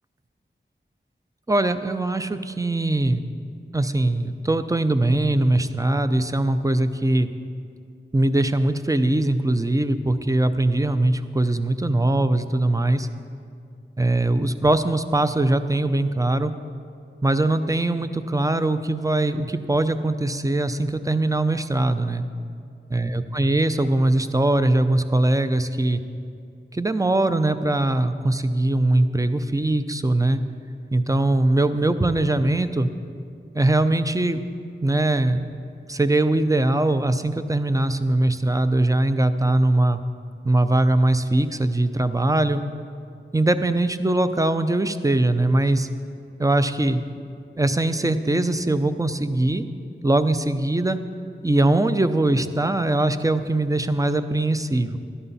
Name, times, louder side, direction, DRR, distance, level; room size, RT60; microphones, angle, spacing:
voice 1, 1.5-3.2 3.7-7.3 8.1-13.1 14.0-16.5 17.2-22.2 22.9-26.0 26.7-30.4 30.9-32.9 33.5-34.4 34.8-35.5 35.9-40.0 40.4-42.6 43.3-45.9 46.4-47.0 47.6-49.6 50.0-51.0 51.4-55.0, right 2 dB, 15° right, 10 dB, 0.5 m, -21 dB
12.5 x 11.0 x 4.1 m, 2.4 s
wide cardioid pair, 40°, 20 cm